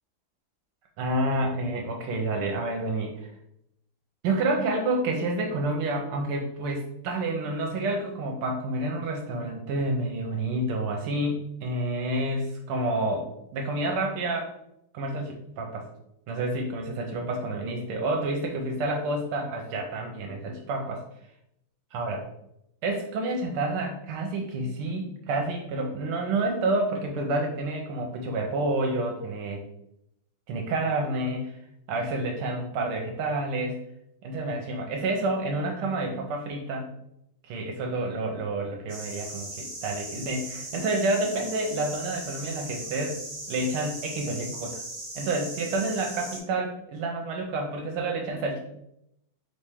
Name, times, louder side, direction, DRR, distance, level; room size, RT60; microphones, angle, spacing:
voice 1, 1.0-3.1 4.2-14.5 14.9-15.9 16.3-21.0 21.9-22.2 22.8-29.6 30.5-31.6 31.9-33.8 34.2-36.9 37.4-43.2 43.5-44.8 45.1-48.6, right 2 dB, 85° right, 1 dB, 1.5 m, -29 dB
sound 1, 38.9-46.4, right 1 dB, 30° right, 0.7 m, -38 dB
4.3 x 3.2 x 3.4 m, 0.79 s
omnidirectional pair, 2.3 m